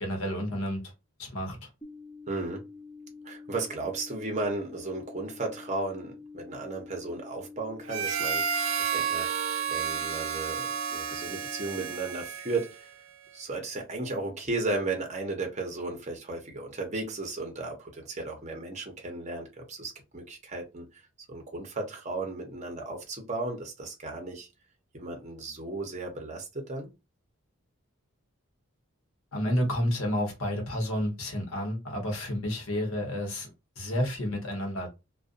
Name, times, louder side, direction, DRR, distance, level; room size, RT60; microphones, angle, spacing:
voice 1, 0.0-0.9 1.2-1.7 29.3-33.5 33.8-34.9, equal, 75° left, 1.0 m, -30 dB
sound 1, 1.8-11.8, left 4 dB, 10° left, 0.4 m, -47 dB
voice 2, 2.3-2.7 3.2-12.9 13.3-21.0 21.3-24.5 24.9-26.9, right 2 dB, 30° right, 0.7 m, -35 dB
Harmonica, 7.9-12.9, right 7 dB, 65° right, 0.3 m, -31 dB
2.5 x 2.2 x 2.5 m
head